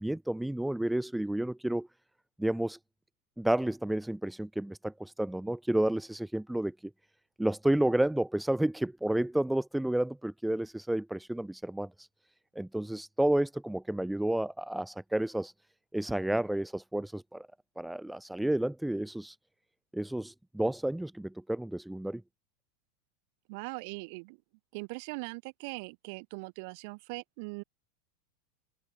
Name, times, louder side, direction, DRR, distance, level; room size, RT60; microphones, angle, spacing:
voice 1, 0.0-1.9 2.4-2.8 3.4-6.7 7.4-12.1 12.5-15.5 15.9-17.5 17.8-19.4 19.9-22.2, right 1 dB, ahead, 0.9 m, -31 dB
voice 2, 23.5-24.4 24.7-27.6, right 30 dB, 50° right, 2.7 m, -40 dB
supercardioid pair, 165°, 0 cm